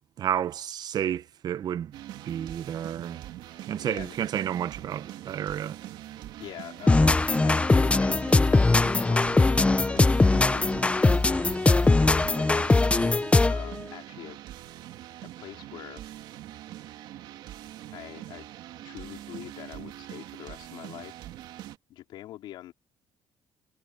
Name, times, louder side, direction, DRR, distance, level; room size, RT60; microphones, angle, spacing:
voice 1, 0.2-1.9 2.3-3.2 3.7-5.8, right 10 dB, 60° right, 1.0 m, -31 dB
sound 1, 1.9-21.8, right 13 dB, 90° right, 2.7 m, -43 dB
voice 2, 3.8-4.2 6.4-11.3 12.1-13.1 13.5-14.4 15.2-16.0 17.9-18.5 18.8-21.1 21.9-22.7, left 14 dB, 85° left, 4.3 m, -43 dB
sound 2, 6.9-13.7, left 3 dB, 15° left, 0.9 m, -21 dB
cardioid pair, 110°, 8 cm